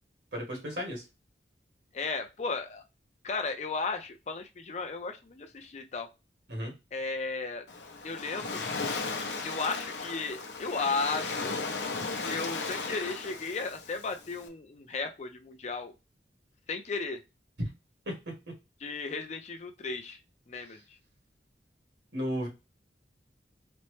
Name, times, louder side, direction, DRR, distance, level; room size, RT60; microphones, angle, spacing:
voice 1, 0.3-1.0 6.5-6.7 17.6-17.7 22.1-22.5, equal, 75° right, 0 dB, 1.7 m, -33 dB
voice 2, 1.9-2.8 3.2-6.1 6.9-7.7 8.0-8.6 9.4-11.6 12.2-15.9 16.7-17.2 18.8-20.2 20.5-21.0, left 4 dB, 40° left, 6 dB, 0.4 m, -35 dB
Waves surf, 7.7-14.5, left 4 dB, 80° left, 0.7 m, -36 dB
4.2 x 2.0 x 3.1 m, 0.25 s
head